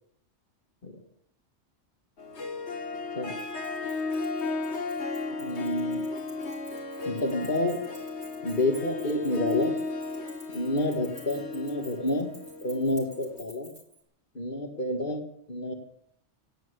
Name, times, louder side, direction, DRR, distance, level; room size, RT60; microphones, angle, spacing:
Harp, 2.2-13.4, left 3 dB, 70° left, 1.7 m, -35 dB
Keys jangling, 3.4-14.0, right 1 dB, 30° right, 4.5 m, -53 dB
voice 1, 5.4-6.0 7.1-7.8 8.4-9.7 10.5-12.3 12.6-13.7 14.3-15.2 15.5-15.7, left 1 dB, 45° left, 2 dB, 2.1 m, -29 dB
17.0 x 9.4 x 8.1 m, 0.73 s
omnidirectional pair, 1.2 m